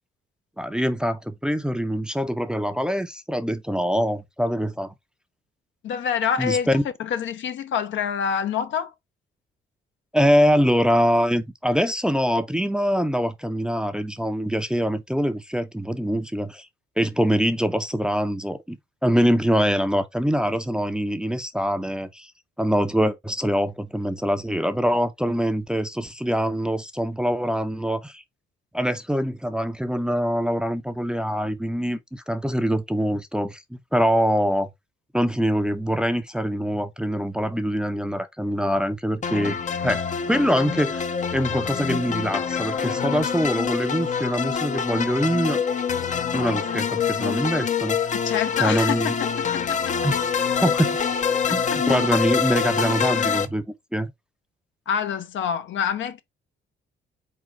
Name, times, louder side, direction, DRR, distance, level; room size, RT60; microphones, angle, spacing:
voice 1, 0.6-4.9 6.4-6.8 10.1-16.7 17.0-18.8 19.0-22.3 22.6-28.2 28.7-34.7 35.1-39.6 39.8-41.1 41.3-45.6 46.3-48.0 48.6-49.1 50.0-50.2 50.6-51.0 51.5-53.6 53.9-54.1, equal, 5° right, 0.5 m, -24 dB
voice 2, 5.8-8.9 48.2-50.0 51.5-51.8 54.9-56.2, left 8 dB, 70° left, 0.8 m, -27 dB
sound 1, 39.2-53.5, left 7 dB, 40° left, 0.6 m, -25 dB
4.1 x 3.7 x 3.1 m
cardioid pair, 90°, 20 cm